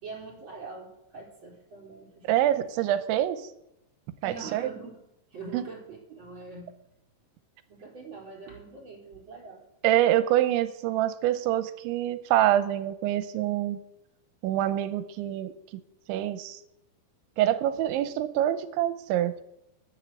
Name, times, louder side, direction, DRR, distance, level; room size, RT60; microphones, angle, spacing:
voice 1, 0.0-2.6 4.2-5.0 5.3-6.7 7.7-9.6, right 4 dB, 25° right, -3 dB, 4.8 m, -43 dB
voice 2, 2.2-3.5 4.2-4.7 5.5-5.6 9.8-13.8 14.4-15.5 16.1-16.6 17.4-19.4, right 12 dB, 85° right, 11 dB, 3.0 m, -26 dB
10.5 x 10.0 x 8.1 m, 0.84 s
omnidirectional pair, 5.4 m